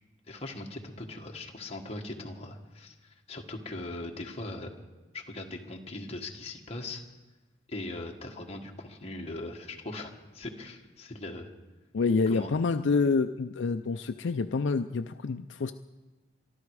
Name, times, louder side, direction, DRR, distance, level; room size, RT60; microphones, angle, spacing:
voice 1, 0.3-4.7 5.1-7.0 7.7-11.5 12.3-12.5, left 2 dB, 30° left, 1 dB, 1.6 m, -40 dB
voice 2, 11.9-15.7, left 4 dB, 70° left, 8 dB, 0.4 m, -27 dB
24.0 x 12.0 x 4.8 m, 1.2 s
head